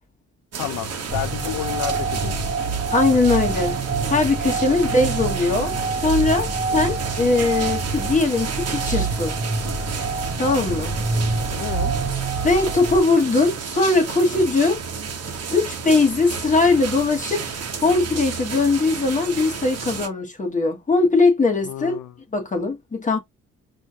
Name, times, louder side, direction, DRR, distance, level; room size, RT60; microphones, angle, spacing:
sound 1, 0.5-20.1, right 5 dB, 55° right, 1.0 m, -31 dB
voice 1, 0.6-2.4 4.7-5.0 6.7-7.0 11.4-11.9 21.6-22.1, left 12 dB, 80° left, 0.6 m, -31 dB
sound 2, 1.1-13.0, right 4 dB, 25° right, 1.1 m, -26 dB
voice 2, 2.9-3.8 4.1-9.4 10.4-10.9 12.4-14.8 15.5-22.0 22.3-23.2, left 3 dB, 25° left, 1.1 m, -20 dB
4.3 x 2.8 x 2.3 m
cardioid pair, 90°, 30 cm